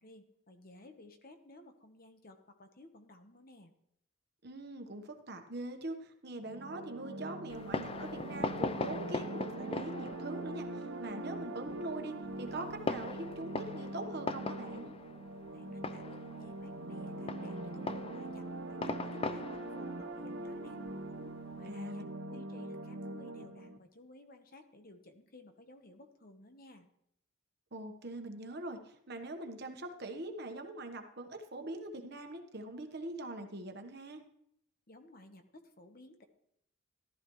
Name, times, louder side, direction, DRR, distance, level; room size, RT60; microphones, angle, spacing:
voice 1, 0.0-3.7 15.5-20.8 21.5-26.9 34.9-36.3, left 2 dB, 45° left, 6 dB, 1.1 m, -56 dB
voice 2, 4.4-14.9 21.6-22.4 27.7-34.2, right 2 dB, 50° right, 5 dB, 1.2 m, -43 dB
sound 1, 6.4-23.8, right 2 dB, 65° right, 1.0 m, -43 dB
Fireworks, 7.5-21.7, left 3 dB, 25° left, 0.4 m, -41 dB
14.5 x 12.5 x 3.1 m, 0.75 s
head